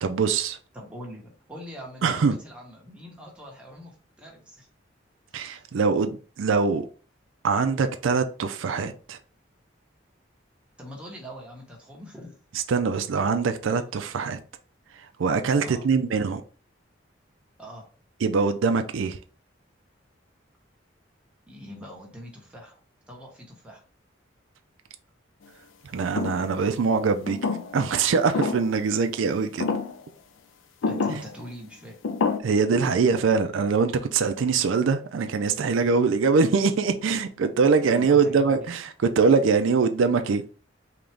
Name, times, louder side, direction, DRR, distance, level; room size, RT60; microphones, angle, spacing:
voice 1, 0.0-0.6 2.0-2.4 5.3-6.9 7.4-9.2 12.5-14.4 15.2-16.4 18.2-19.2 25.9-27.4 27.7-29.7 31.1-31.2 32.4-38.9 39.2-40.4, right 5 dB, 85° right, 0.4 m, -23 dB
voice 2, 0.7-4.7 5.4-5.6 10.8-12.3 15.6-15.9 17.6-17.8 21.5-22.8 23.1-23.8 30.8-32.0 37.9-38.7, equal, 5° right, 1.0 m, -43 dB
sound 1, 26.2-26.5 27.3-27.9 28.3-28.7 29.6-30.0 30.8-31.3 32.0-32.4, left 4 dB, 85° left, 0.5 m, -27 dB
3.8 x 2.9 x 3.4 m
head